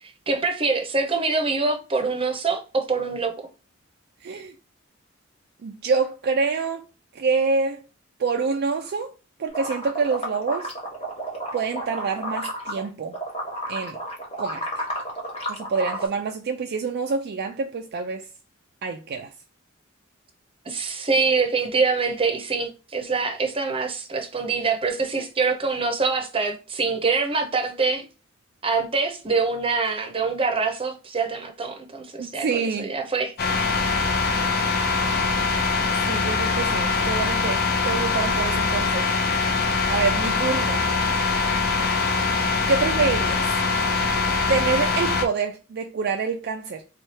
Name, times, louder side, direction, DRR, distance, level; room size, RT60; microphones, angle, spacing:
voice 1, 0.0-3.3 20.7-28.0 28.6-33.3, right 4 dB, 25° right, 0.7 m, -25 dB
voice 2, 4.2-4.5 5.6-6.9 7.1-7.8 8.2-9.1 9.4-10.7 11.5-13.2 13.7-14.0 14.4-14.9 15.5-18.3 18.8-19.3 25.2-25.3 32.2-32.9 36.0-39.1 39.9-40.8 42.7-43.5 44.5-46.8, right 4 dB, 50° right, 0.4 m, -26 dB
sound 1, 9.5-12.9 13.1-16.1, equal, 30° left, 1.0 m, -31 dB
sound 2, 33.4-45.3, left 4 dB, 50° left, 0.6 m, -23 dB
3.1 x 2.3 x 4.2 m
head